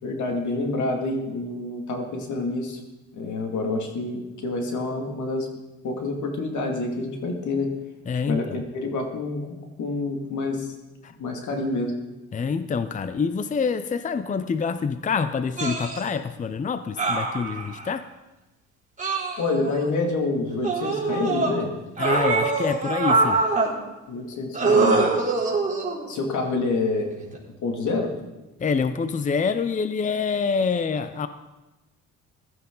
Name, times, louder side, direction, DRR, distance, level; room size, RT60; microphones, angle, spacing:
voice 1, 0.0-2.8 3.1-5.5 5.8-7.7 8.3-10.7 11.2-11.9 19.4-21.7 24.1-25.0 26.1-27.1 27.6-28.1, left 3 dB, 75° left, 3 dB, 2.4 m, -27 dB
voice 2, 8.1-8.6 11.0-11.1 12.3-18.0 22.0-23.4 28.6-31.3, left 5 dB, 25° left, 11 dB, 0.6 m, -26 dB
sound 1, 15.6-16.0 17.0-17.9 19.0-19.8 20.6-21.5 22.0-23.7 24.5-26.1 27.2-27.4, right 3 dB, 25° right, 3.7 m, -23 dB
16.0 x 12.5 x 3.9 m, 1.1 s
cardioid pair, 90°, 30 cm